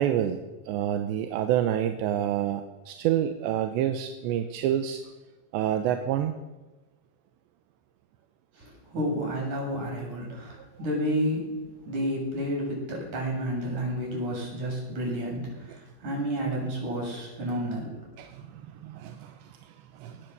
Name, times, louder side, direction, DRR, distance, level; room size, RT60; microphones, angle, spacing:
voice 1, 0.0-5.0 5.5-6.3 18.2-18.3 18.8-19.3 20.0-20.2, right 11 dB, 85° right, 7 dB, 3.3 m, -27 dB
voice 2, 8.6-11.5 11.8-18.0, equal, 45° right, -1 dB, 8.6 m, -31 dB
23.0 x 19.0 x 6.9 m, 1.2 s
omnidirectional pair, 5.0 m